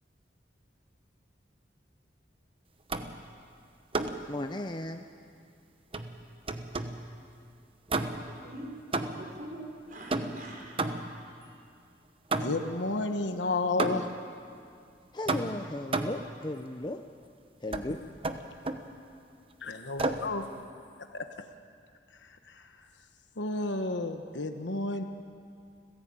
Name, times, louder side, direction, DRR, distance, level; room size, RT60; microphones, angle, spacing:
sound 1, 2.9-3.3 3.9-4.3 5.9-7.1 7.9-8.4 8.9-9.4 10.1-11.3 12.3-12.8 13.8-14.3 15.3-16.3 17.7-17.9 18.2-18.9 20.0-20.3, right 2 dB, 30° right, 1.0 m, -32 dB
voice 1, 4.3-5.0 15.1-17.0 17.6-18.0, left 1 dB, 25° left, 6 dB, 0.7 m, -35 dB
voice 2, 7.9-9.6 9.9-11.5, right 1 dB, 45° right, 0 dB, 5.3 m, -45 dB
voice 3, 12.4-14.1 19.6-20.5 21.1-21.3 22.2-22.6 23.4-25.0, left 2 dB, 80° left, 6 dB, 1.2 m, -31 dB
29.5 x 15.5 x 8.7 m, 2.4 s
head